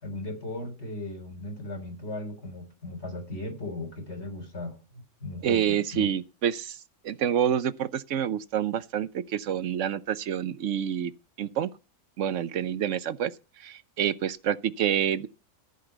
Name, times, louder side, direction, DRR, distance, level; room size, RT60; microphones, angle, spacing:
voice 1, 0.0-6.1, left 2 dB, 45° left, 4.2 m, -37 dB
voice 2, 5.4-6.8 7.0-11.1 11.4-11.7 12.2-13.3 13.6-15.3, right 9 dB, 60° right, 1.0 m, -27 dB
15.0 x 5.4 x 8.0 m
omnidirectional pair, 1.6 m